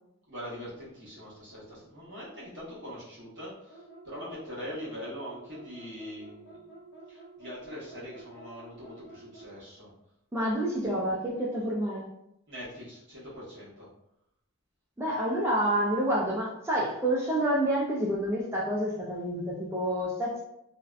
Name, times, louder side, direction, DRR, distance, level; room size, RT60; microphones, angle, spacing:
voice 1, 0.3-6.6 7.1-9.9 12.5-13.9, equal, 55° right, -9 dB, 1.0 m, -42 dB
sound 1, 3.7-9.6, right 2 dB, 50° left, 0.4 m, -50 dB
voice 2, 10.3-12.1 15.0-20.4, right 1 dB, 10° right, -5 dB, 0.3 m, -28 dB
2.7 x 2.1 x 2.3 m, 0.81 s
head